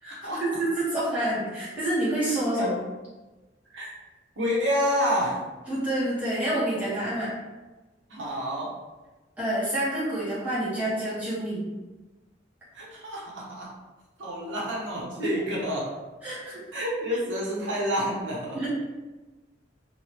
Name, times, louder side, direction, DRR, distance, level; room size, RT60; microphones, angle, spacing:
voice 1, 0.0-2.8 5.7-7.3 9.4-11.6 15.2-15.4 16.2-16.6 18.5-18.7, right 1 dB, 10° right, -11 dB, 1.2 m, -28 dB
voice 2, 4.4-5.4 8.1-8.7 12.7-13.7 14.2-15.9 16.7-18.6, equal, 85° right, -4 dB, 0.8 m, -28 dB
2.9 x 2.6 x 2.9 m, 1.2 s
head